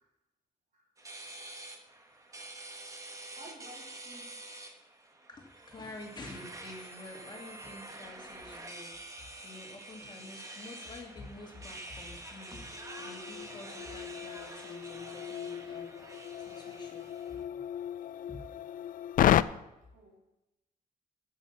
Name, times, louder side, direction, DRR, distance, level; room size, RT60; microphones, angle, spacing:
sound 1, 1.0-17.4, right 2 dB, 20° right, 1.2 m, -47 dB
voice 1, 3.4-4.6 19.9-20.2, right 1 dB, 60° right, 2.9 m, -53 dB
voice 2, 5.3-17.7 18.3-18.5, left 2 dB, 30° left, 2.2 m, -49 dB
sound 2, 10.1-10.3 10.7-10.8 12.4-19.4, left 11 dB, 70° left, 0.4 m, -33 dB
9.2 x 8.4 x 7.0 m
wide cardioid pair, 160°, 15 cm